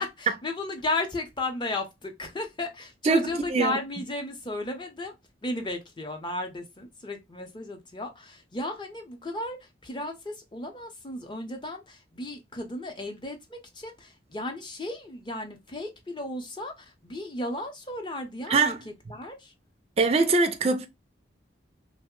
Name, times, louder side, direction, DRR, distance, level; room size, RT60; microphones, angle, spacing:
voice 1, 0.0-5.1 5.4-19.5, left 2 dB, 25° left, 0.6 m, -34 dB
voice 2, 3.0-3.8 18.5-18.8 20.0-20.9, right 4 dB, 30° right, 0.3 m, -23 dB
3.1 x 2.1 x 3.6 m
head